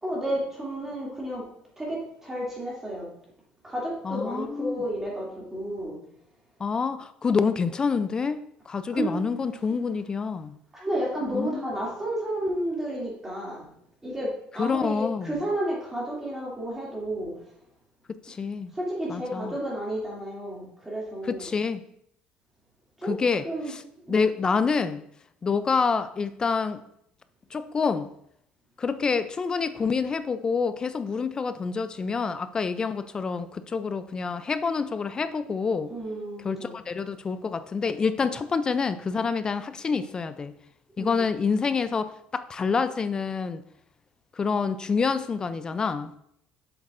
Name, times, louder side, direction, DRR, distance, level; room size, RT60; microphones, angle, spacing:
voice 1, 0.0-1.4 1.8-3.1 3.6-6.0 8.9-9.1 10.7-13.7 14.0-17.5 18.7-21.5 23.0-23.1 23.4-23.7 24.1-24.2 35.9-36.7 41.0-41.3, right 1 dB, 10° right, -5 dB, 2.4 m, -31 dB
voice 2, 4.0-4.8 6.6-8.4 8.7-10.5 11.3-11.7 14.6-15.3 18.1-18.7 19.1-19.5 21.3-21.8 23.0-23.8 24.1-25.0 25.4-26.8 27.5-28.1 28.8-35.9 36.4-40.5 41.0-43.6 44.3-46.2, left 5 dB, 25° left, 12 dB, 0.3 m, -27 dB
7.8 x 7.3 x 2.5 m, 0.73 s
cardioid pair, 145°, 3 cm